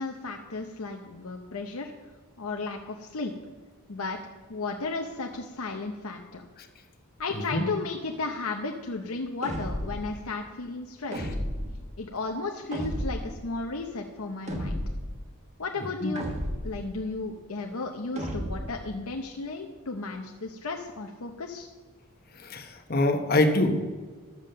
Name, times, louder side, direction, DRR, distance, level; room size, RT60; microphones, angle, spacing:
voice 1, 0.0-1.9 2.4-3.3 3.9-4.2 4.5-6.5 7.2-11.2 12.0-14.8 15.6-16.3 16.6-21.7, left 3 dB, 75° left, 2 dB, 0.8 m, -34 dB
voice 2, 7.3-7.7 11.1-11.3 16.0-16.1 22.3-23.8, left 2 dB, 45° left, 5 dB, 1.2 m, -25 dB
sound 1, 9.4-10.1 11.1-11.8 12.7-13.3 14.5-15.1 16.1-16.8 18.1-18.8, equal, 30° right, 1.3 m, -32 dB
10.5 x 7.5 x 6.6 m, 1.4 s
head